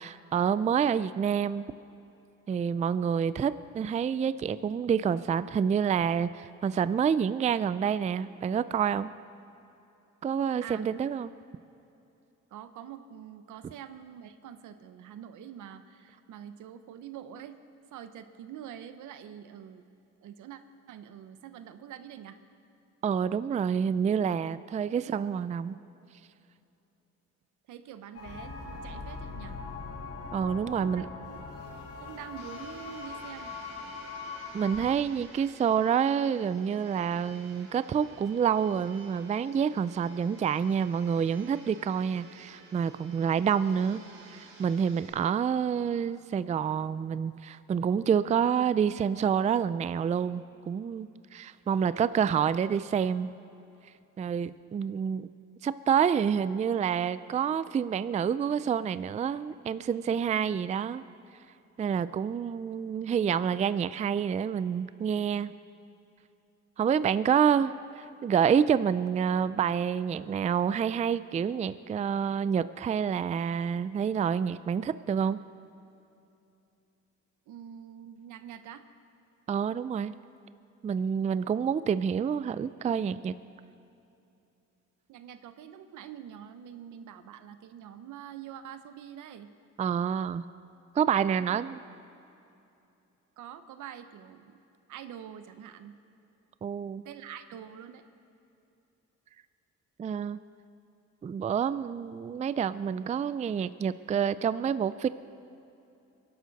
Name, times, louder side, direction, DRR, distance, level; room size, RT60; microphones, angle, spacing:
voice 1, 0.0-1.7 2.5-9.1 10.2-11.3 23.0-25.8 30.3-31.1 34.5-44.0 44.3-53.3 54.2-55.3 55.6-61.0 61.8-65.5 66.8-75.4 79.5-80.1 80.8-83.3 89.8-90.4 90.9-91.8 96.6-97.1 100.0-100.4 101.2-105.1, right 7 dB, 25° right, 15 dB, 0.3 m, -28 dB
voice 2, 12.5-17.6 17.9-19.8 20.2-20.6 20.9-22.4 25.0-25.4 27.7-29.6 30.7-31.4 32.0-33.5 67.3-67.4 77.5-78.8 85.1-89.5 91.3-91.6 93.4-94.6 94.9-95.9 97.0-98.0, right 9 dB, 80° right, 10 dB, 0.9 m, -45 dB
sound 1, 28.1-34.9, left 4 dB, 55° left, 2.3 m, -41 dB
Domestic sounds home sounds, 32.4-45.1, right 3 dB, 45° right, 4.1 m, -53 dB
22.5 x 11.5 x 4.1 m, 2.8 s
cardioid pair, 90°, 30 cm